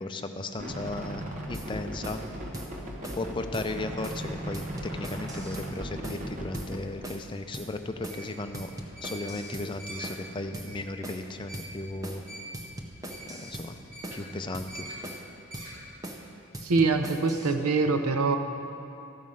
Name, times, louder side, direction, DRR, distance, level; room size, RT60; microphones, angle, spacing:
voice 1, 0.0-2.2 3.2-4.6 4.9-8.7 9.0-12.2 13.3-13.8 14.1-14.9, left 2 dB, 20° left, 7 dB, 0.4 m, -35 dB
sound 1, 0.6-6.8, right 1 dB, 35° right, 1.0 m, -37 dB
sound 2, 1.5-1.7 2.0-2.3 2.5-2.7 3.0-3.3 3.5-3.7 4.0-4.3 4.5-5.7 6.0-6.3 6.5-6.7 7.0-7.3 7.5-7.7 8.0-8.3 8.5-9.7 10.0-10.3 10.5-10.7 11.0-11.3 11.5-11.7 12.0-12.3 12.5-13.7 14.0-14.3 14.5-14.7 15.0-15.3 15.5-15.7 16.0-16.3 16.5-17.5, right 1 dB, 15° right, 0.7 m, -40 dB
sound 3, 5.7-15.9, equal, 55° right, 2.6 m, -46 dB
voice 2, 16.6-18.4, right 4 dB, 90° right, 7 dB, 0.6 m, -24 dB
13.5 x 5.5 x 6.4 m, 2.9 s
head